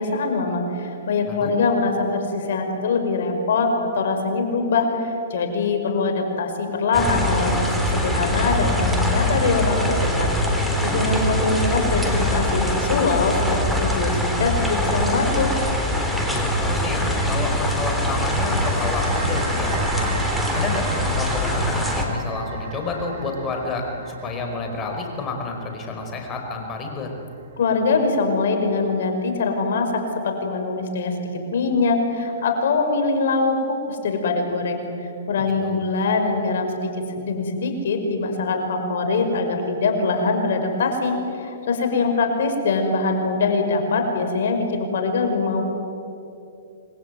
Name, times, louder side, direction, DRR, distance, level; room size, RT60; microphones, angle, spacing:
voice 1, 0.0-10.3 10.8-15.5 27.6-34.8 35.3-45.6, left 3 dB, 70° left, 5 dB, 5.5 m, -23 dB
sound 1, 6.9-22.1, equal, ahead, 3.7 m, -23 dB
voice 2, 16.3-20.2 20.5-27.1 35.6-35.8, left 3 dB, 20° left, 3 dB, 5.2 m, -30 dB
sound 2, 17.6-28.1, right 3 dB, 60° right, 5.3 m, -35 dB
27.0 x 21.5 x 9.4 m, 2.7 s
hypercardioid pair, 145°, 0 cm